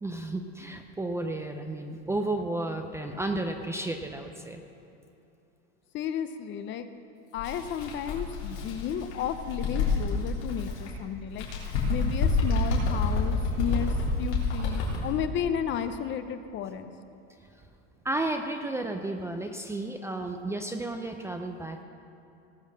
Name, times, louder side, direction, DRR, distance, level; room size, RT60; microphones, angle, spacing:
voice 1, 0.0-4.6 18.0-21.8, right 2 dB, 10° right, 5 dB, 0.5 m, -32 dB
voice 2, 5.9-6.9 7.3-11.5 11.9-16.9, left 8 dB, 35° left, 10 dB, 0.7 m, -33 dB
Bird, 7.4-10.9 11.3-15.1, left 3 dB, 90° left, 3.6 m, -28 dB
18.5 x 6.4 x 6.3 m, 2.8 s
supercardioid pair, 135°, 33 cm